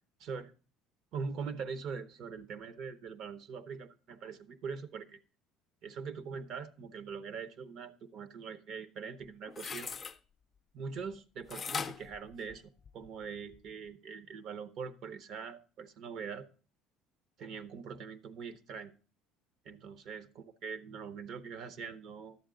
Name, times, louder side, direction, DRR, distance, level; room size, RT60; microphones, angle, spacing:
voice 1, 0.2-0.5 1.1-5.2 5.8-9.9 10.7-16.5 17.4-18.9 19.6-22.4, right 5 dB, 60° right, 13 dB, 0.8 m, -42 dB
sound 1, 9.2-10.2 11.5-13.1 13.5-13.6, left 6 dB, 30° left, 0.5 m, -40 dB
11.0 x 7.5 x 3.8 m, 0.38 s
supercardioid pair, 100°, 0 cm